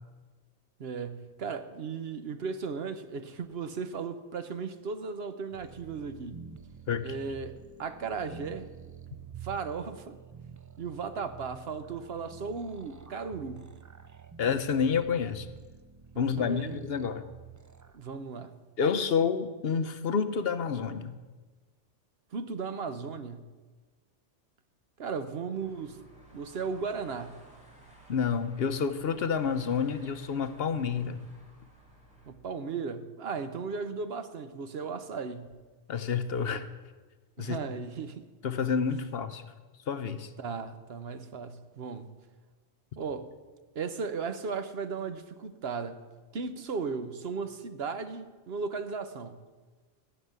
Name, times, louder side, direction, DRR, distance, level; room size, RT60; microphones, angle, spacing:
voice 1, 0.8-6.4 7.0-8.7 9.4-10.2 10.8-13.7 16.1-16.8 17.9-18.6 22.3-23.4 25.0-26.0 26.3-27.4 32.3-35.5 37.4-38.2 40.4-42.1 43.0-43.3 43.7-46.0 46.3-49.4, right 5 dB, 60° right, 10 dB, 1.0 m, -36 dB
sound 1, 5.5-18.0, right 8 dB, 30° right, 0.3 m, -49 dB
voice 2, 14.4-15.5 16.2-17.2 18.8-21.2 28.1-31.3 35.9-36.7 37.4-37.6 38.4-39.4 39.9-40.3, left 6 dB, 60° left, 10 dB, 0.9 m, -29 dB
sound 2, 25.5-32.3, right 2 dB, 5° right, 3.1 m, -55 dB
14.5 x 6.0 x 9.4 m, 1.3 s
omnidirectional pair, 1.2 m